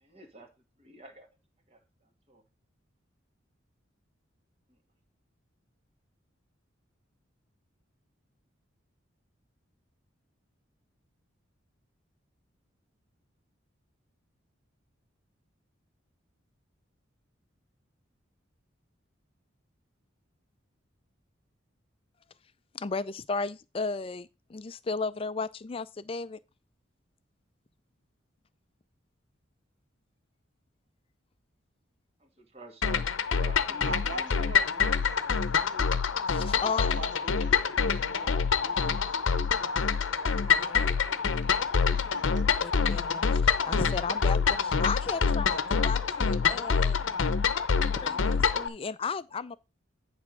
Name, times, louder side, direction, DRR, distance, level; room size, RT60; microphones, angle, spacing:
voice 1, 0.0-0.5 0.8-1.3 1.7-1.8 2.3-2.4 32.4-34.5 34.9-35.0, right 1 dB, 30° right, 1.6 m, -48 dB
voice 2, 22.7-26.4 36.3-37.0 40.5-40.9 42.6-47.0 47.9-49.6, left 4 dB, 30° left, 0.4 m, -35 dB
sound 1, 32.8-48.7, left 6 dB, 75° left, 0.7 m, -26 dB
voice 3, 33.8-36.0 36.4-42.7, right 3 dB, 70° right, 1.3 m, -45 dB
9.7 x 3.5 x 6.0 m
head